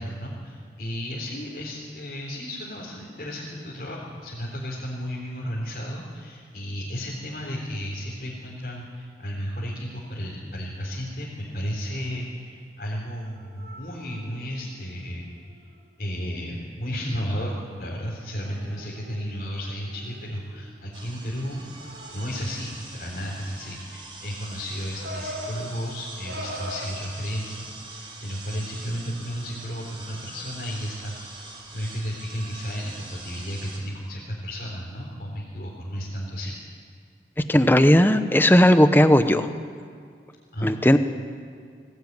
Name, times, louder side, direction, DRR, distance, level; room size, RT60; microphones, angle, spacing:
voice 1, 0.0-15.3 16.0-21.7 22.1-31.2 31.7-36.6 40.5-41.0, equal, 55° left, -5 dB, 3.6 m, -33 dB
sound 1, 11.6-11.8 13.2-15.7 16.0-16.2 17.8-17.9 18.4-21.0 21.6-22.6 24.9-26.9, equal, 70° right, 2.3 m, -41 dB
sound 2, 20.9-33.8, right 2 dB, 30° right, 3.6 m, -43 dB
voice 2, 37.5-39.5 40.6-41.0, left 1 dB, 10° left, 10 dB, 0.8 m, -16 dB
21.0 x 17.0 x 9.5 m, 2.1 s
head